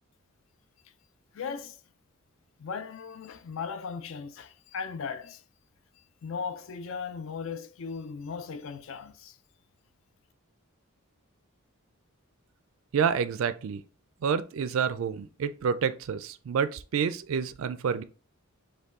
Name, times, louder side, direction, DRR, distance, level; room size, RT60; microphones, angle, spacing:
voice 1, 1.3-1.8 2.6-5.4 6.2-9.4, left 5 dB, 65° left, 0.4 m, -37 dB
voice 2, 12.9-13.8 14.2-18.0, right 7 dB, 70° right, 0.4 m, -28 dB
5.2 x 2.2 x 3.6 m
head